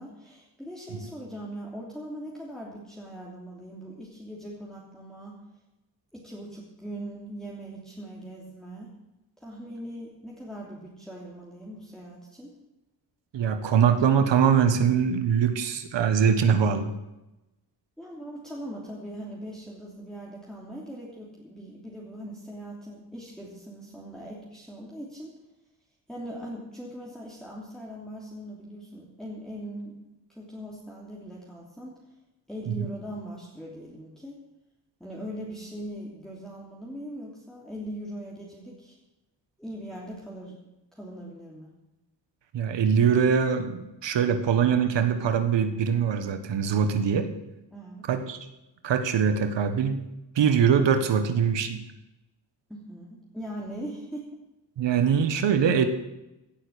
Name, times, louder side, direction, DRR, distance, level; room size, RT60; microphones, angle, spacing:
voice 1, 0.0-5.4 6.1-8.9 9.4-12.6 18.0-25.3 26.1-29.9 30.3-32.0 32.5-34.4 35.0-38.9 39.6-40.6 40.9-41.7 47.7-48.0 52.7-54.3, right 1 dB, ahead, -5 dB, 3.0 m, -40 dB
voice 2, 13.3-16.9 32.7-32.8 42.5-47.3 48.1-48.4 48.8-50.1 50.3-51.8 54.8-55.9, right 7 dB, 80° right, 9 dB, 1.4 m, -23 dB
16.0 x 6.6 x 8.3 m, 0.95 s
cardioid pair, 90°, 43 cm